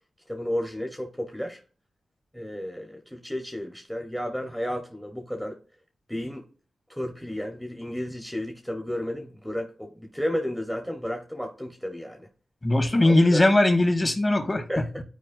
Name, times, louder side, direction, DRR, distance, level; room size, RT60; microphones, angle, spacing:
voice 1, 0.3-1.6 2.3-5.6 6.1-6.5 6.9-12.3 13.0-13.4 14.7-15.0, equal, ahead, 1.1 m, -32 dB
voice 2, 12.6-14.8, left 2 dB, 30° left, 2.3 m, -20 dB
12.5 x 4.6 x 2.6 m
cardioid pair, 50°, 0 cm